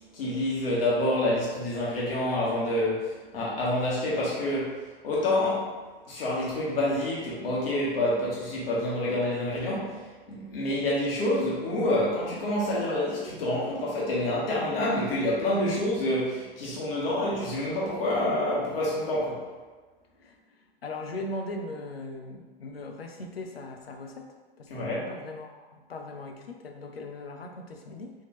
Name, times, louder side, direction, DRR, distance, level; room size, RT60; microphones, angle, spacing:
voice 1, 0.1-4.8 5.0-5.8 6.1-19.4 24.7-25.0, left 1 dB, 75° left, -6 dB, 1.5 m, -27 dB
voice 2, 20.2-28.3, left 2 dB, 90° left, 3 dB, 0.6 m, -39 dB
4.5 x 2.8 x 3.0 m, 1.3 s
hypercardioid pair, 90°, 29 cm